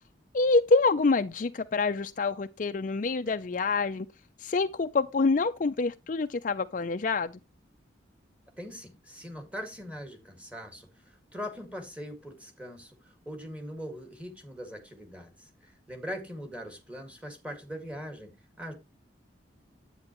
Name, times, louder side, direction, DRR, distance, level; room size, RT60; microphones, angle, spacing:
voice 1, 0.3-4.1 4.4-7.4, left 3 dB, 45° left, 0.4 m, -26 dB
voice 2, 8.6-18.3 18.6-18.7, equal, 5° right, 1.9 m, -41 dB
9.7 x 8.8 x 3.0 m
head